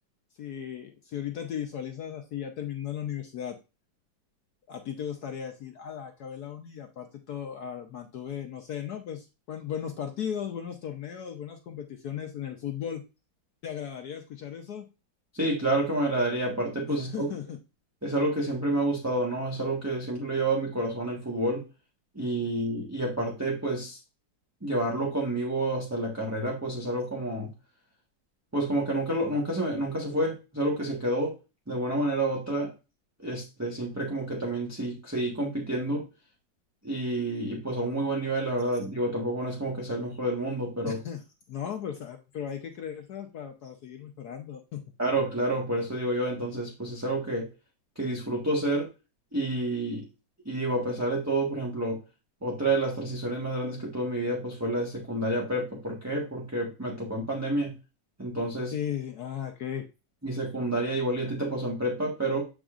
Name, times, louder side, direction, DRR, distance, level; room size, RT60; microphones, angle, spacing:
voice 1, 0.4-3.6 4.7-13.0 13.6-14.9 16.9-17.6 40.9-44.8 58.7-59.8, left 9 dB, 65° left, 4 dB, 1.2 m, -36 dB
voice 2, 15.3-17.3 18.0-21.7 22.1-24.0 24.6-27.5 28.5-31.3 31.7-32.7 33.2-36.0 36.8-41.0 45.0-47.5 48.0-48.9 49.3-50.1 50.4-52.0 52.4-57.7 58.2-58.7 60.2-62.4, right 1 dB, 10° right, -3 dB, 1.1 m, -29 dB
8.1 x 5.0 x 2.5 m, 0.29 s
omnidirectional pair, 2.0 m